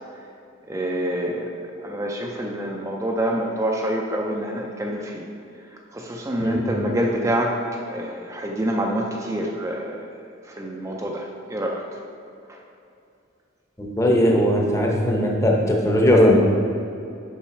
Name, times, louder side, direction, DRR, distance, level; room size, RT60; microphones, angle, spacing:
voice 1, 0.7-5.2 5.9-7.6 7.9-10.0 10.6-11.8, right 1 dB, 15° right, -1 dB, 0.4 m, -26 dB
voice 2, 13.8-16.4, equal, 15° left, -1 dB, 0.8 m, -18 dB
7.1 x 5.6 x 4.3 m, 2.6 s
head